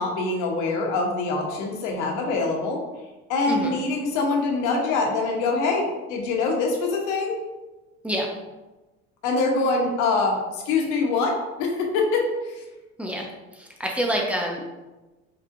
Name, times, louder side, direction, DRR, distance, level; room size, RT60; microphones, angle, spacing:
voice 1, 0.0-2.8 3.3-7.4 9.2-12.6, left 3 dB, 70° left, 1 dB, 0.9 m, -24 dB
voice 2, 13.6-14.6, equal, 5° right, -1 dB, 0.8 m, -27 dB
4.6 x 2.5 x 2.5 m, 1.1 s
hypercardioid pair, 75°, 32 cm